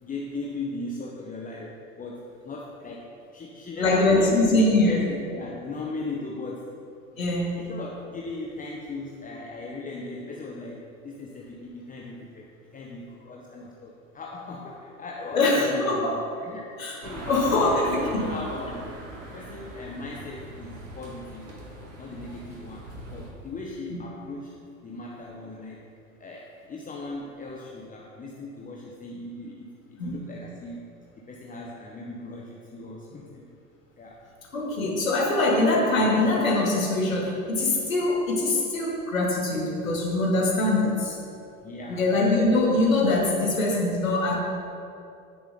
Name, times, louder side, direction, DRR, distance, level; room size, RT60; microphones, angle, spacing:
voice 1, 0.0-6.7 7.6-18.9 19.2-21.7 22.0-24.5 24.8-25.9 26.2-30.8 31.1-33.5 34.0-34.2 41.6-42.1, left 2 dB, 20° left, -2 dB, 1.1 m, -38 dB
voice 2, 3.8-5.0 7.2-7.6 15.3-16.2 16.8-17.0 17.3-18.2 23.9-24.0 30.0-30.3 34.5-41.2 41.9-44.4, left 2 dB, 75° left, -3 dB, 2.5 m, -23 dB
sound 1, 17.0-23.3, right 1 dB, 70° right, 2.0 m, -40 dB
16.0 x 7.0 x 3.9 m, 2.6 s
figure-of-eight pair, 75°, 40 cm